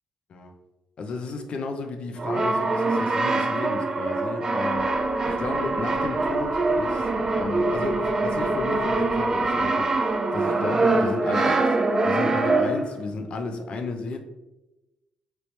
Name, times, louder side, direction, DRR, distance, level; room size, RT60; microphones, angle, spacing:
voice 1, 1.0-7.1 7.3-11.7 12.0-14.2, left 3 dB, 55° left, 5 dB, 0.4 m, -33 dB
Brass instrument, 2.2-13.0, right 3 dB, 25° right, 0.3 m, -24 dB
sound 1, 4.7-10.5, equal, 75° left, 1.5 m, -38 dB
3.1 x 3.0 x 2.7 m, 1.0 s
cardioid pair, 120°, 2 cm